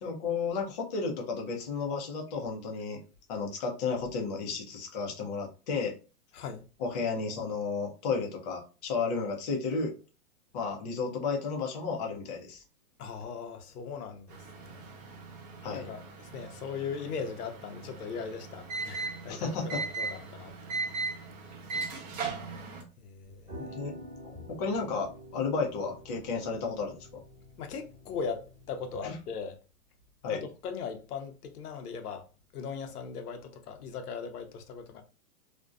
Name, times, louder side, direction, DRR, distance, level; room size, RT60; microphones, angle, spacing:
voice 1, 0.0-3.0 3.3-5.9 6.8-9.9 10.5-12.6 15.6-15.9 19.3-19.8 23.6-23.9 24.2-27.2 29.0-29.2 30.2-30.4, left 4 dB, 30° left, 0.4 m, -33 dB
voice 2, 13.0-14.8 15.7-20.5 23.0-23.7 27.6-29.5 30.3-32.3 32.5-35.0, left 5 dB, 85° left, 0.7 m, -39 dB
sound 1, 14.3-22.8, right 4 dB, 30° right, 0.5 m, -38 dB
sound 2, 23.2-29.2, equal, 5° right, 1.1 m, -48 dB
2.5 x 2.1 x 2.3 m
hypercardioid pair, 145°, 45 cm